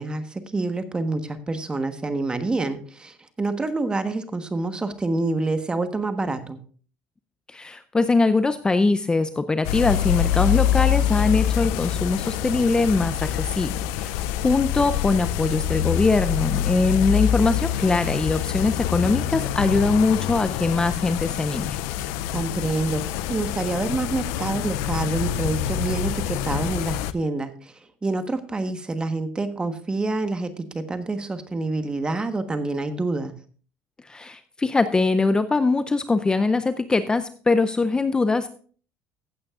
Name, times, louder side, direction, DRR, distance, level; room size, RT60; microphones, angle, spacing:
voice 1, 0.0-6.6 16.9-17.1 22.3-33.3, right 2 dB, 20° right, 9 dB, 1.3 m, -27 dB
voice 2, 7.5-21.8 34.0-38.5, left 3 dB, 15° left, 11 dB, 0.5 m, -22 dB
sound 1, 9.6-27.1, left 11 dB, 85° left, 0.5 m, -26 dB
15.0 x 8.7 x 2.4 m, 0.42 s
supercardioid pair, 100°, 5 cm